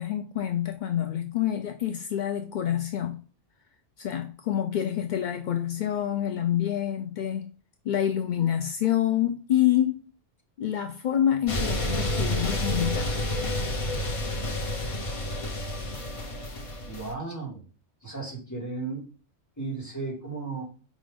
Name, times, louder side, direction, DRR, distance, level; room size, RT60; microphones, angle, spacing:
voice 1, 0.0-3.2 4.0-7.5 7.8-10.1 10.6-13.2, left 11 dB, 60° left, 0.5 m, -27 dB
sound 1, 11.5-17.1, left 1 dB, 30° left, 0.8 m, -29 dB
voice 2, 16.9-17.6 18.0-19.0 19.6-20.6, right 3 dB, 15° left, 2.4 m, -34 dB
5.2 x 3.7 x 5.1 m
omnidirectional pair, 1.3 m